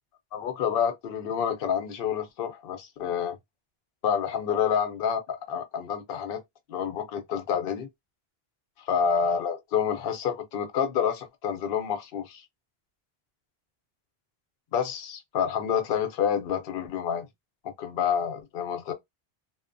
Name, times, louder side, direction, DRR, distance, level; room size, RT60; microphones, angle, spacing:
voice 1, 0.3-3.4 4.0-6.4 6.7-7.9 8.9-12.4 14.7-17.3 17.8-18.9, left 7 dB, 65° left, 0.7 m, -28 dB
2.7 x 2.1 x 2.4 m
omnidirectional pair, 1.1 m